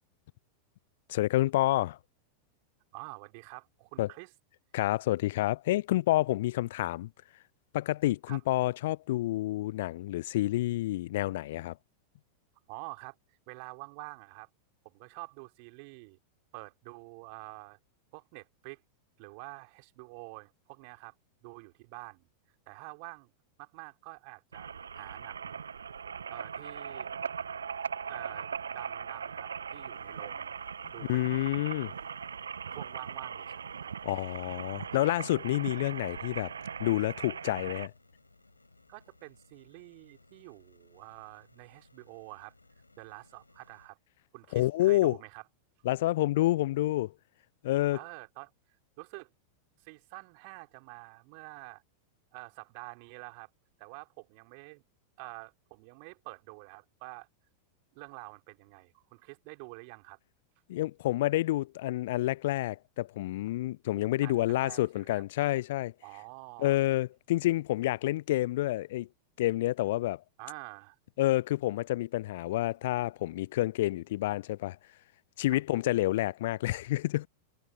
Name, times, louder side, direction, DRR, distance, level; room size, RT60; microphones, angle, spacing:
voice 1, 1.1-2.0 4.0-4.1 4.7-7.1 7.7-11.7 31.1-31.9 34.0-36.5 36.8-37.9 44.5-45.2 45.8-47.1 47.6-48.0 60.7-65.9 66.6-69.1 69.4-70.2 71.2-74.8 75.4-77.3, left 16 dB, 55° left, 0.4 m, -29 dB
voice 2, 2.9-4.3 8.3-8.4 12.7-14.5 14.8-16.2 16.5-17.8 18.1-18.8 19.2-21.2 21.4-22.3 22.7-23.3 23.6-25.6 26.3-27.1 28.1-30.5 30.9-31.4 32.7-33.9 38.9-42.5 43.0-44.0 44.3-45.4 47.9-48.5 49.0-49.3 49.8-51.8 52.3-53.5 53.8-54.8 55.2-57.3 57.9-60.2 64.2-65.2 66.0-66.8 70.4-71.0 75.5-75.6, right 36 dB, 45° right, 3.2 m, -47 dB
sound 1, 24.5-37.9, right 6 dB, 70° right, 1.0 m, -40 dB
sound 2, 29.9-43.9, left 2 dB, 80° left, 5.7 m, -62 dB
figure-of-eight pair, 90°, 0 cm